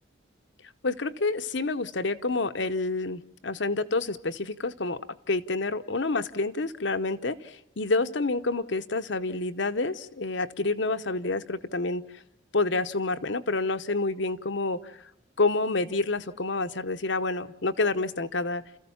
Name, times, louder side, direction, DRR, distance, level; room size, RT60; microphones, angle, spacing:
voice 1, 0.8-5.0 5.3-12.0 12.5-15.0 15.4-18.6, left 3 dB, 65° left, 11 dB, 1.0 m, -28 dB
30.0 x 15.0 x 7.2 m, 0.86 s
head